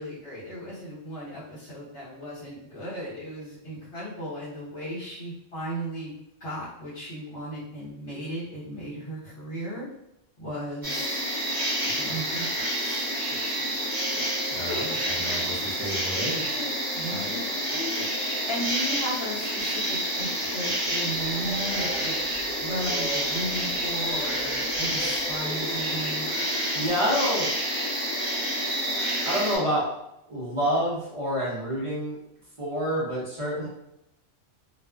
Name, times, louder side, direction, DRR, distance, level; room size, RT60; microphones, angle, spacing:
voice 1, 0.0-9.9 10.4-11.2 11.8-12.5 12.8-13.6 13.9-14.3 14.7-15.0 16.1-22.2 22.6-26.3 33.5-33.7, equal, 55° left, -9 dB, 1.3 m, -36 dB
sound 1, 10.8-29.6, right 1 dB, 20° right, 1.0 m, -28 dB
voice 2, 14.5-14.9 15.2-16.5 26.7-27.5 29.2-29.9 30.3-32.2 32.6-33.7, equal, 40° right, -7 dB, 0.5 m, -28 dB
Train, 21.1-26.9, equal, 40° left, 0.6 m, -39 dB
2.4 x 2.3 x 2.3 m, 0.83 s
omnidirectional pair, 1.3 m